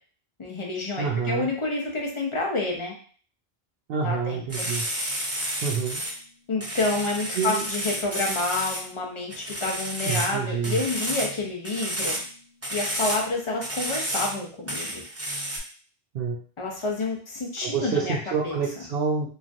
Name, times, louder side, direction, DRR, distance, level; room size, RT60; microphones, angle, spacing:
voice 1, 0.4-2.9 4.0-4.7 6.5-12.2 12.7-15.0 16.6-18.2 18.4-18.6, left 3 dB, 35° left, 0 dB, 0.5 m, -29 dB
voice 2, 1.0-1.5 3.9-4.9 5.6-6.0 7.4-7.7 10.0-10.8 16.1-16.4 17.6-19.3, right 5 dB, 70° right, -2 dB, 0.8 m, -27 dB
sound 1, 4.5-6.1 6.6-8.8 9.3-10.4 10.6-11.4 11.6-12.2 12.6-13.2 13.6-14.4 14.7-15.6, right 1 dB, 20° right, 0.5 m, -30 dB
3.1 x 2.4 x 2.5 m, 0.44 s
omnidirectional pair, 1.1 m